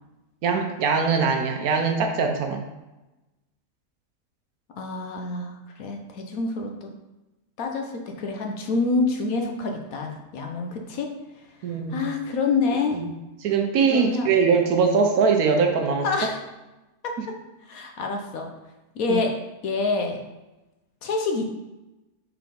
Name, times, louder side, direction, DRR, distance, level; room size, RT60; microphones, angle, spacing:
voice 1, 0.4-2.6 11.6-12.1 12.9-13.1 13.4-16.1 19.1-19.2, right 5 dB, 70° right, 4 dB, 1.1 m, -22 dB
voice 2, 4.8-6.9 7.6-11.1 11.9-13.0 13.9-14.3 16.0-16.4 17.0-17.1 17.6-18.5 19.0-19.3 19.6-20.2 21.0-21.4, left 3 dB, 65° left, 3 dB, 1.0 m, -27 dB
4.7 x 3.9 x 5.1 m, 1.0 s
omnidirectional pair, 1.8 m